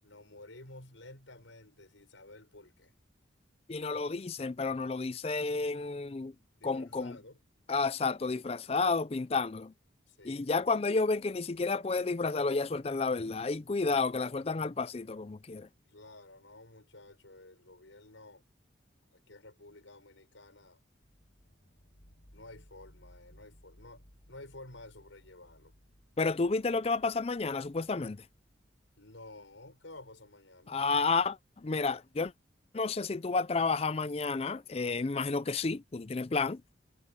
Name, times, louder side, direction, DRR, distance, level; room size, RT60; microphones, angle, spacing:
voice 1, 0.0-2.9 6.6-7.4 10.1-10.5 15.9-18.4 19.1-20.8 22.3-25.7 29.0-30.8, left 2 dB, 85° left, 6.5 m, -52 dB
voice 2, 3.7-6.3 6.6-7.2 7.7-9.7 10.2-15.7 26.2-28.2 30.7-32.3 32.7-36.6, left 4 dB, 30° left, 0.4 m, -31 dB
sound 1, 21.0-30.8, equal, 60° left, 5.7 m, -62 dB
head